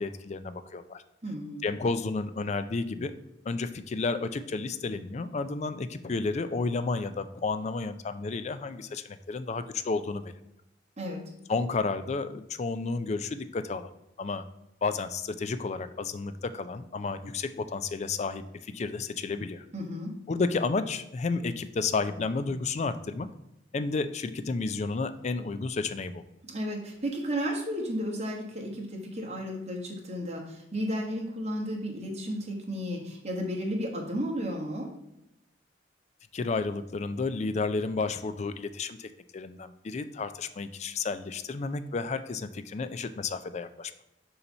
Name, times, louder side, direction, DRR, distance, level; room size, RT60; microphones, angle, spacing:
voice 1, 0.0-1.0 1.6-3.1 3.5-10.3 11.5-13.9 14.2-14.4 14.8-19.6 20.3-23.3 23.7-26.2 36.3-43.9, left 4 dB, 40° left, 11 dB, 0.4 m, -31 dB
voice 2, 1.2-1.6 11.0-11.2 19.7-20.1 26.5-34.9, equal, 35° right, 0 dB, 1.2 m, -33 dB
6.7 x 2.9 x 5.4 m, 0.87 s
head